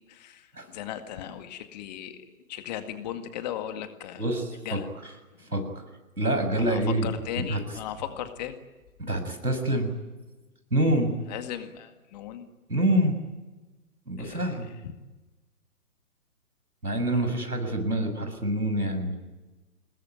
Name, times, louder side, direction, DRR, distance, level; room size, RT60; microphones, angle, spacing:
voice 1, 0.1-4.3 4.6-4.9 5.4-5.5 6.6-8.6 11.3-12.5 14.2-14.9, left 10 dB, 30° left, 8 dB, 2.0 m, -37 dB
voice 2, 4.2-4.8 5.5-5.8 6.2-7.1 7.4-7.6 9.1-9.9 10.7-11.1 12.7-13.2 14.1-14.7 16.8-19.2, right 1 dB, 90° right, 7 dB, 6.7 m, -26 dB
27.5 x 20.5 x 9.3 m, 1.2 s
figure-of-eight pair, 135°, 44 cm